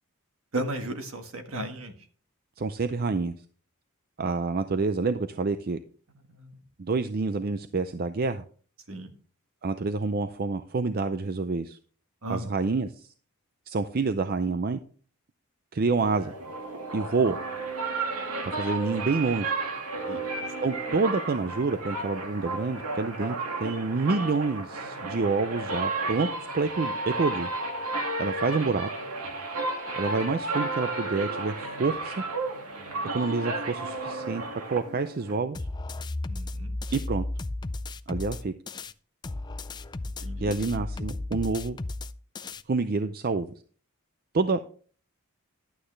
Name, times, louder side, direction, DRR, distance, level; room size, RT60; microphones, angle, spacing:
voice 1, 0.5-1.9 6.4-6.5 8.9-9.1 12.2-12.5 20.1-20.2 36.3-36.7 40.2-40.5, right 1 dB, 65° right, 6 dB, 1.6 m, -34 dB
voice 2, 2.6-3.3 4.2-5.8 6.8-8.4 9.6-11.8 12.3-13.1 13.7-14.8 15.7-16.3 16.9-17.4 18.4-19.5 20.6-23.3 23.6-26.3 26.5-27.5 28.2-28.9 30.0-32.1 33.1-35.6 36.9-37.2 38.1-38.5 40.4-41.8 42.7-43.5 44.3-44.6, right 4 dB, 45° right, 10 dB, 0.5 m, -27 dB
sound 1, 16.0-35.4, right 2 dB, 85° right, 2.1 m, -33 dB
sound 2, 35.5-38.9 39.2-42.6, left 2 dB, 20° left, 0.4 m, -34 dB
11.5 x 8.7 x 3.3 m, 0.42 s
head